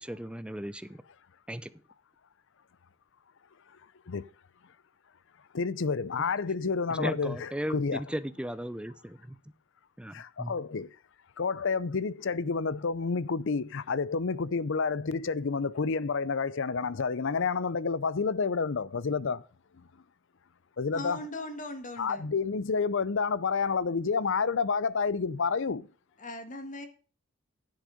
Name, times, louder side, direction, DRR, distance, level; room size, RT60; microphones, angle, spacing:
voice 1, 0.0-1.0 1.5-1.7 6.9-9.4 10.0-10.5, equal, 5° right, 0.5 m, -36 dB
voice 2, 5.5-8.0 10.1-10.9 11.4-19.4 20.8-21.2 22.0-25.9, left 5 dB, 60° left, 0.6 m, -29 dB
voice 3, 20.9-22.2 26.2-26.9, left 2 dB, 35° left, 1.7 m, -39 dB
10.5 x 7.8 x 5.2 m
head